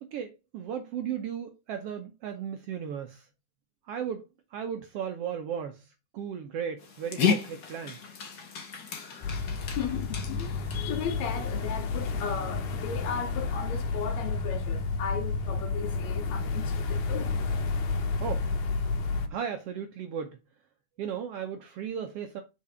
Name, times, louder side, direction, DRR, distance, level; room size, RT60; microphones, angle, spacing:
voice 1, 0.0-3.3 3.9-4.2 4.5-8.0 18.2-18.6 19.3-20.4 21.0-22.4, right 8 dB, 70° right, 1.5 m, -35 dB
Dog, 6.8-12.1, left 6 dB, 50° left, 1.2 m, -34 dB
sound 1, 9.2-19.3, left 4 dB, 90° left, 2.6 m, -31 dB
voice 2, 9.4-17.3, left 7 dB, 70° left, 2.2 m, -36 dB
5.7 x 4.7 x 4.8 m
omnidirectional pair, 3.4 m